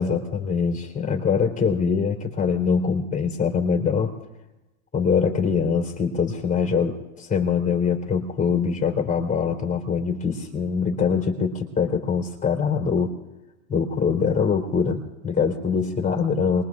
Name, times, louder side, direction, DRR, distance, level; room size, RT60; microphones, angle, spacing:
voice 1, 0.0-4.1 4.9-13.2 13.7-16.6, left 6 dB, 20° left, 3 dB, 3.5 m, -23 dB
26.0 x 22.5 x 2.5 m, 1.0 s
supercardioid pair, 115°, 41 cm